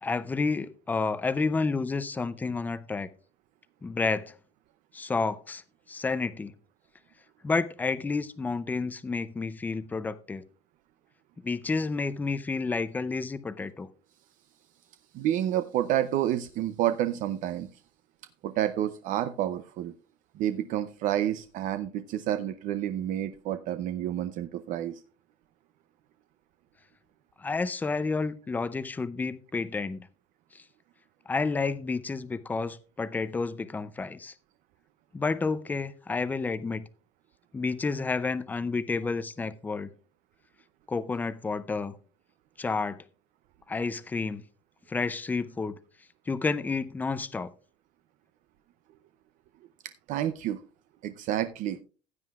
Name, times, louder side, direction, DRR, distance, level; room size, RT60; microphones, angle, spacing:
voice 1, 0.0-3.1 3.8-4.3 4.9-5.6 5.9-6.5 7.4-10.4 11.4-13.9 27.4-30.1 30.5-30.6 31.3-34.3 35.1-36.9 37.5-39.9 40.9-42.0 42.6-43.0 43.7-44.4 44.9-45.8 46.3-47.5, left 4 dB, 10° left, 0.5 m, -30 dB
voice 2, 15.1-17.7 18.4-19.9 20.3-25.0 50.1-50.6 51.0-51.8, right 12 dB, 45° right, 0.6 m, -29 dB
15.5 x 9.4 x 2.4 m
cardioid pair, 160°, 18 cm